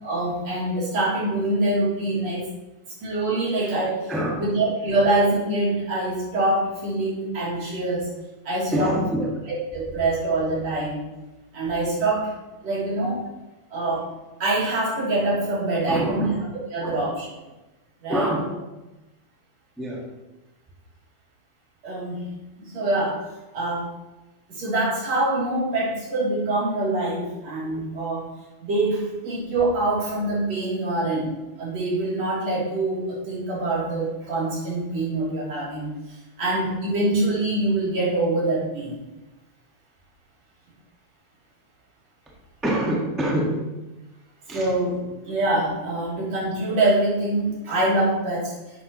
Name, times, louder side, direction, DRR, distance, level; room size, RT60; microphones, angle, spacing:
voice 1, 0.0-2.5 3.0-4.1 4.4-8.1 8.4-9.0 9.7-11.0 11.5-12.3 12.6-13.2 13.7-14.1 14.4-16.3 16.7-17.3 18.0-18.3 21.8-23.2 23.5-23.9 24.5-28.2 28.6-39.0 44.5-48.5, right 2 dB, 60° right, -7 dB, 4.4 m, -25 dB
voice 2, 4.1-4.4 8.7-9.4 15.9-16.4 16.8-17.1 18.1-18.6 19.8-20.1 27.3-27.4 42.6-43.8 44.5-44.7, equal, ahead, -3 dB, 0.7 m, -26 dB
11.0 x 7.8 x 3.1 m, 1.1 s
omnidirectional pair, 3.5 m